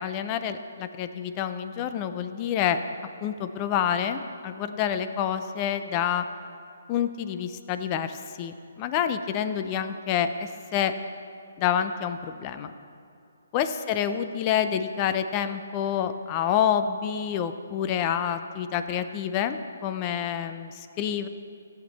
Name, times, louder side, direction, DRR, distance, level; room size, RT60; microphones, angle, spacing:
voice 1, 0.0-2.8 3.2-6.2 6.9-10.9 11.6-12.7 13.5-21.3, left 9 dB, 30° left, 10 dB, 0.5 m, -28 dB
13.5 x 8.1 x 4.1 m, 2.6 s
hypercardioid pair, 145°, 0 cm